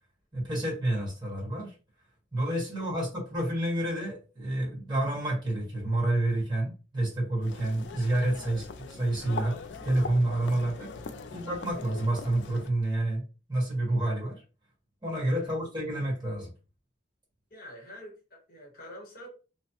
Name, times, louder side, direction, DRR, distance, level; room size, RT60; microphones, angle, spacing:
voice 1, 0.3-1.7 2.3-8.6 9.0-9.6 9.8-10.9 11.3-13.2 13.5-14.4 15.0-16.5, right 1 dB, 25° right, 1.5 m, -29 dB
sound 1, 7.4-12.7, left 4 dB, 75° left, 0.4 m, -41 dB
voice 2, 17.5-19.3, left 1 dB, 55° left, 1.0 m, -47 dB
3.1 x 2.0 x 2.9 m
head